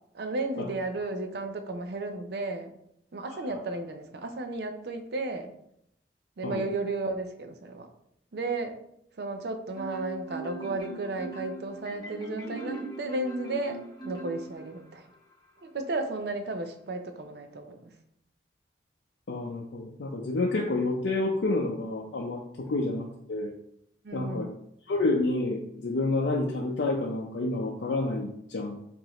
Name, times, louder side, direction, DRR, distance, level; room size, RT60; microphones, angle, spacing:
voice 1, 0.1-2.7 3.1-5.5 6.4-7.9 8.3-8.7 9.2-13.8 14.0-15.1 15.6-17.9 24.0-24.5, right 2 dB, 65° right, 7 dB, 0.5 m, -33 dB
Marimba xylophone, 9.7-14.9, right 2 dB, 25° left, 1.0 m, -39 dB
voice 2, 19.3-23.5 24.1-24.5 24.9-28.8, left 2 dB, 75° left, -1 dB, 0.5 m, -29 dB
4.8 x 2.6 x 2.9 m, 0.74 s
head